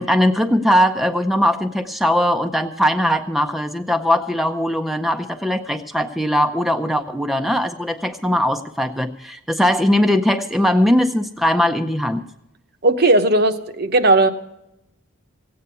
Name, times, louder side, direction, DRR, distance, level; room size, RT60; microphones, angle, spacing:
voice 1, 0.0-12.3, equal, ahead, 6 dB, 0.6 m, -20 dB
voice 2, 12.8-14.3, right 2 dB, 55° right, 7 dB, 1.0 m, -16 dB
16.5 x 8.8 x 6.8 m, 0.85 s
head